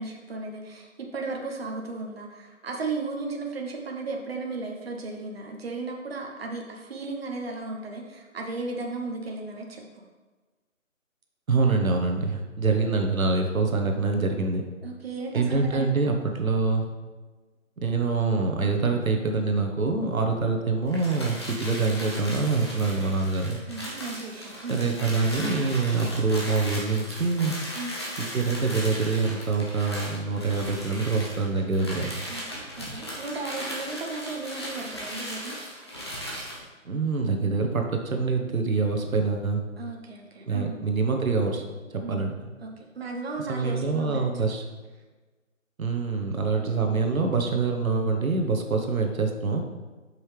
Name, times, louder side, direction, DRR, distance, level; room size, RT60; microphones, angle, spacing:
voice 1, 0.0-10.0 14.8-15.9 20.3-20.5 23.7-24.8 27.7-27.9 32.3-35.6 39.8-40.7 42.0-44.4, right 3 dB, 50° right, 1 dB, 1.1 m, -35 dB
voice 2, 11.5-14.6 15.3-16.8 17.8-23.6 24.7-27.6 28.3-32.1 36.8-39.6 40.5-41.6 41.9-42.3 43.5-44.6 45.8-49.6, right 4 dB, 90° right, 3 dB, 1.1 m, -25 dB
sound 1, 20.9-36.6, equal, 20° left, 0.8 m, -37 dB
7.8 x 5.5 x 3.3 m, 1.3 s
hypercardioid pair, 165°, 40 cm